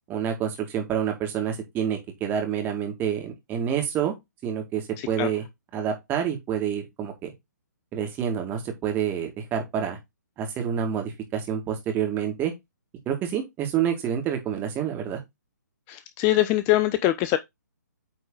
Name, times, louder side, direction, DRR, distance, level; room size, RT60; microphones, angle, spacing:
voice 1, 0.1-4.1 4.4-5.4 5.7-7.3 7.9-10.0 10.4-12.5 13.1-15.2, right 8 dB, 20° right, 1.9 m, -28 dB
voice 2, 5.0-5.3 15.9-17.4, left 15 dB, 20° left, 0.4 m, -23 dB
8.8 x 3.8 x 3.8 m
figure-of-eight pair, 130°, 10 cm